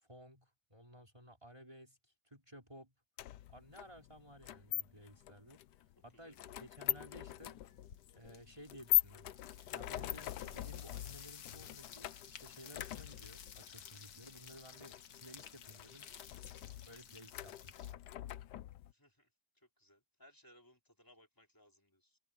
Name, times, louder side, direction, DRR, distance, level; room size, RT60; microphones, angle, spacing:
voice 1, 0.0-2.9 3.5-5.6 6.0-7.6 8.1-9.3 9.7-16.1 16.9-18.0, equal, 20° right, 4.1 m, -56 dB
sound 1, 3.2-18.9, left 14 dB, 85° left, 1.3 m, -41 dB
voice 2, 6.1-6.6 18.9-19.3 19.6-22.2, equal, 10° left, 3.7 m, -65 dB
sound 2, 6.3-6.7 7.0-17.9, left 8 dB, 65° left, 1.6 m, -55 dB
omnidirectional pair, 1.7 m